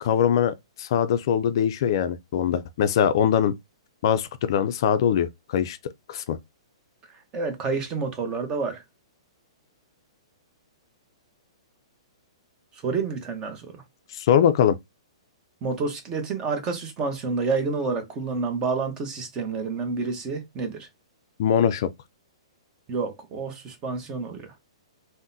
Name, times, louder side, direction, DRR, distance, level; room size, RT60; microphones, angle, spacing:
voice 1, 0.0-3.5 4.0-5.8 6.1-6.4 14.1-14.8 21.4-21.9, left 9 dB, 55° left, 0.3 m, -22 dB
voice 2, 7.3-8.8 12.8-13.8 15.6-20.9 22.9-24.5, right 4 dB, 25° right, 0.8 m, -29 dB
3.6 x 2.1 x 2.6 m
hypercardioid pair, 150°, 3 cm